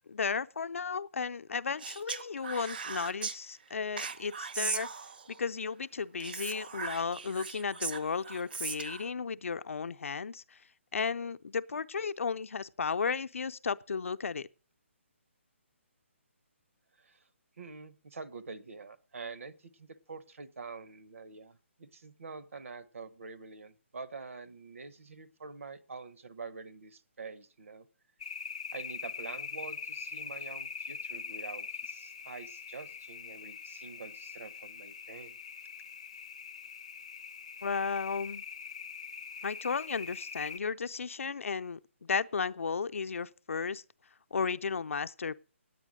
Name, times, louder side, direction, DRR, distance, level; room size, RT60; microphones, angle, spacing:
voice 1, 0.1-4.9 5.3-10.6 10.9-14.5 37.6-38.4 39.4-43.8 44.3-45.3, left 5 dB, 80° left, 0.5 m, -34 dB
Speech, 1.8-3.4 4.0-5.4 6.2-9.1, right 5 dB, 45° right, 0.5 m, -38 dB
voice 2, 17.6-27.9 28.7-35.4, right 4 dB, 80° right, 1.1 m, -46 dB
sound 1, 28.2-40.6, left 6 dB, 25° left, 0.4 m, -43 dB
9.8 x 9.0 x 6.2 m
hypercardioid pair, 180°, 7 cm